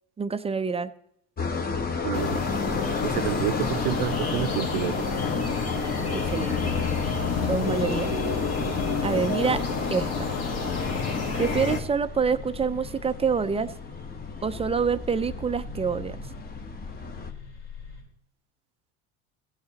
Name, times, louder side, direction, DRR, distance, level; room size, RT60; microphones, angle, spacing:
voice 1, 0.2-0.9 6.1-6.7 7.4-8.1 9.0-9.6 9.9-10.3 11.4-13.7 14.4-16.2, right 6 dB, 15° right, 12 dB, 0.4 m, -27 dB
sound 1, 1.4-17.3, left 5 dB, 25° left, 1.1 m, -35 dB
voice 2, 2.0-2.4 3.0-5.0, right 13 dB, 75° right, 14 dB, 0.6 m, -29 dB
sound 2, 2.1-11.8, left 4 dB, 45° left, 1.6 m, -28 dB
sound 3, 3.0-18.0, left 3 dB, 85° left, 3.3 m, -45 dB
16.0 x 8.5 x 2.9 m, 0.74 s
supercardioid pair, 95°, 35 cm